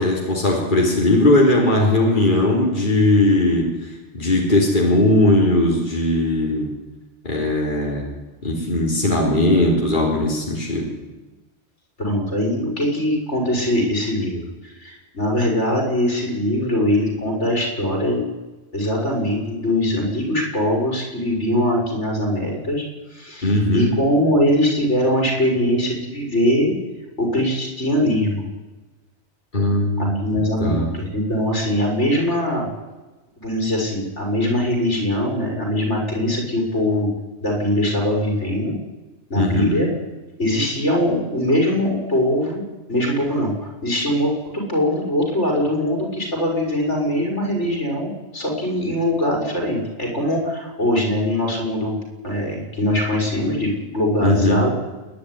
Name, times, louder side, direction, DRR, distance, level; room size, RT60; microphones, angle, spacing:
voice 1, 0.0-3.7 4.1-6.7 7.2-8.1 8.4-10.9 23.4-23.9 29.5-30.9 39.3-39.7 54.2-54.6, left 1 dB, 45° left, -1 dB, 3.8 m, -18 dB
voice 2, 12.0-18.3 18.7-22.9 23.1-26.7 27.2-28.5 30.0-32.7 33.4-37.1 37.4-38.7 39.3-39.9 40.4-42.6 42.9-52.0 52.2-54.7, left 1 dB, 80° left, 0 dB, 6.3 m, -22 dB
28.0 x 11.0 x 9.9 m, 1.2 s
omnidirectional pair, 1.2 m